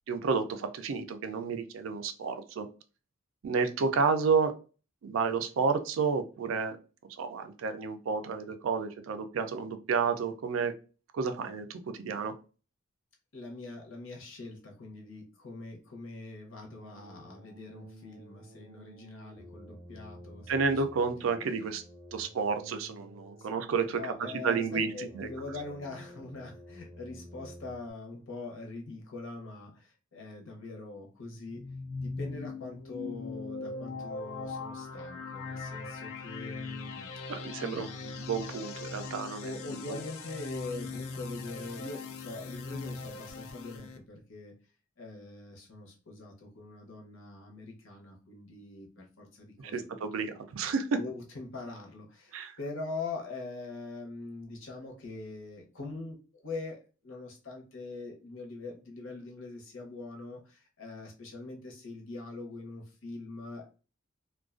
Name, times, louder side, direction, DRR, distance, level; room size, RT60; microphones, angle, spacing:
voice 1, 0.1-2.7 3.4-4.5 5.0-6.8 7.2-10.7 11.1-12.3 20.5-21.8 22.1-24.1 24.4-25.3 37.3-39.5 49.7-50.9 52.3-52.6, right 5 dB, 70° right, 8 dB, 0.4 m, -31 dB
voice 2, 13.3-20.8 21.2-21.3 23.4-23.5 23.9-31.7 32.0-38.1 39.4-44.5 45.0-50.3 50.9-63.7, left 3 dB, 70° left, 1 dB, 0.7 m, -43 dB
sound 1, 16.6-27.9, equal, 5° left, 0.5 m, -51 dB
sound 2, 31.4-44.0, left 4 dB, 85° left, 0.4 m, -40 dB
2.4 x 2.2 x 2.4 m, 0.35 s
head